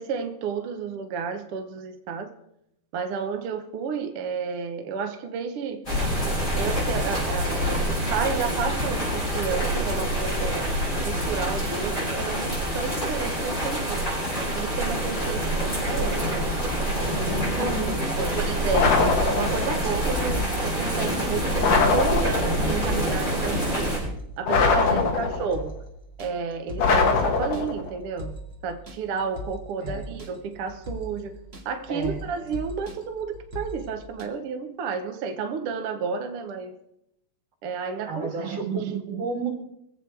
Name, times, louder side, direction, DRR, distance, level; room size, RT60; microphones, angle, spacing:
voice 1, 0.0-2.3 2.9-5.8 6.5-14.1 14.5-16.6 17.2-17.3 18.2-23.9 24.4-25.7 26.2-28.3 28.6-31.4 31.6-36.7 37.6-39.2, right 6 dB, 75° right, 6 dB, 1.3 m, -31 dB
sound 1, 5.9-24.0, equal, 20° left, 7.4 m, -26 dB
voice 2, 17.0-18.4 24.9-25.1 29.8-30.1 31.9-32.2 38.1-38.8 39.2-39.5, right 3 dB, 45° right, -1 dB, 3.9 m, -32 dB
sound 2, 18.2-34.2, equal, 25° right, 1.6 m, -39 dB
sound 3, 18.7-19.8 21.6-22.7 24.5-25.6 26.8-27.9, left 4 dB, 55° left, 2.2 m, -22 dB
24.0 x 8.3 x 4.6 m, 0.80 s
omnidirectional pair, 4.0 m